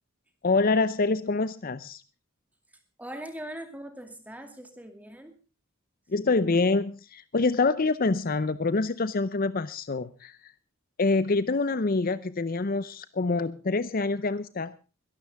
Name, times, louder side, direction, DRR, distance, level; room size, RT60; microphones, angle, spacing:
voice 1, 0.4-2.0 6.1-10.5 11.0-14.7, left 3 dB, 45° left, 15 dB, 0.6 m, -26 dB
voice 2, 3.0-5.3, right 1 dB, 5° right, 7 dB, 2.4 m, -41 dB
22.5 x 12.5 x 3.5 m, 0.33 s
head